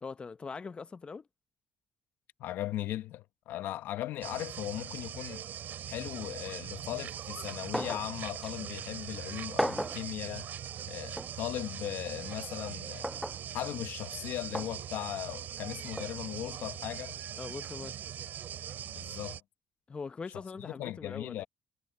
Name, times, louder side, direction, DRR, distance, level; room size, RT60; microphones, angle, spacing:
voice 1, 0.0-1.2 17.4-17.9 19.9-21.4, left 5 dB, 30° left, 0.8 m, -42 dB
voice 2, 2.4-5.4 5.9-10.5 10.8-13.1 13.5-17.2 18.9-19.4 20.6-21.4, left 13 dB, 80° left, 1.1 m, -38 dB
sound 1, 4.2-19.4, right 10 dB, 65° right, 3.3 m, -41 dB
sound 2, 7.7-8.1 8.4-8.5 9.6-10.0 11.2-11.3 13.0-13.4 14.5-14.7 16.0-16.1, equal, ahead, 0.4 m, -33 dB
cardioid pair, 85°, 3 cm